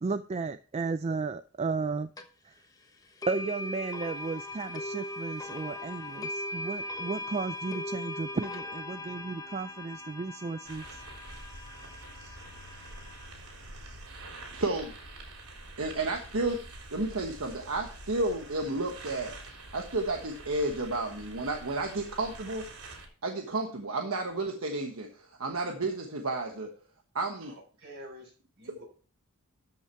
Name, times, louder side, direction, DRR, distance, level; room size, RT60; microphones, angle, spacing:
voice 1, 0.0-2.1 2.4-2.5 3.3-11.0, right 4 dB, 30° right, 11 dB, 0.4 m, -34 dB
sound 1, 2.2-2.3 3.2-13.3, left 1 dB, 15° left, 1.1 m, -39 dB
sound 2, 10.6-23.1, right 2 dB, 85° right, 3.6 m, -46 dB
voice 2, 14.5-14.9 15.8-16.6 16.9-19.3 19.7-22.6 23.2-26.7 27.1-27.5, right 2 dB, 70° right, 2 dB, 1.3 m, -32 dB
voice 3, 27.4-28.8, equal, 50° right, 1 dB, 4.4 m, -48 dB
13.0 x 5.9 x 4.5 m, 0.40 s
head